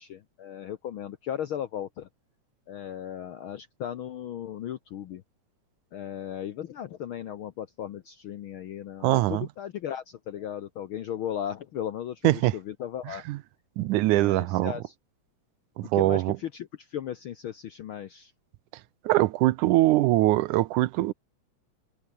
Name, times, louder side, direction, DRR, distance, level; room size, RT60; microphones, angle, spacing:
voice 1, 0.0-2.1 2.7-5.2 5.9-13.2 14.1-14.9 15.9-18.3, left 10 dB, 70° left, 1.2 m, -36 dB
voice 2, 9.0-9.5 12.2-12.5 13.3-13.4 13.8-14.7 15.8-16.4 19.1-21.1, right 17 dB, 90° right, 2.3 m, -22 dB
omnidirectional pair, 3.4 m